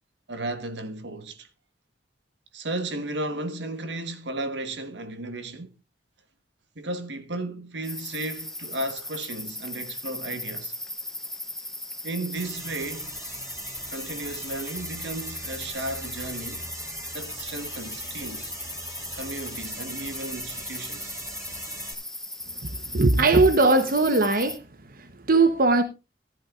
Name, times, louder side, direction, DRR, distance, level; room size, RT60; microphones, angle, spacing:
voice 1, 0.3-1.5 2.5-5.8 6.7-10.7 12.0-13.2 13.9-16.6 17.1-18.5 19.1-21.2, right 2 dB, 85° right, 1.4 m, -34 dB
sound 1, 7.8-24.6, left 1 dB, 5° left, 0.9 m, -38 dB
sound 2, 12.3-21.9, right 1 dB, 15° right, 3.1 m, -40 dB
voice 2, 22.7-24.6 25.0-25.8, right 3 dB, 55° right, 1.0 m, -20 dB
15.0 x 11.0 x 2.5 m
head